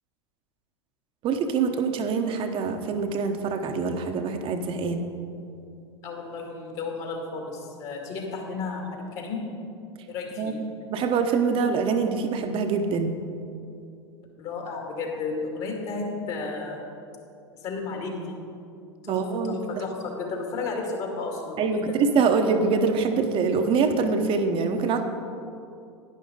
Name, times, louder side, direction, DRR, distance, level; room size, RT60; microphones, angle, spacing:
voice 1, 1.2-5.1 10.4-10.5 10.9-13.2 19.1-19.6 21.6-25.0, right 5 dB, 40° right, 7 dB, 0.9 m, -24 dB
voice 2, 6.0-9.4 10.1-10.5 14.4-16.8 17.6-18.4 19.0-21.8, left 4 dB, 50° left, 1 dB, 2.3 m, -33 dB
11.0 x 10.0 x 3.9 m, 2.5 s
figure-of-eight pair, 85°, 14 cm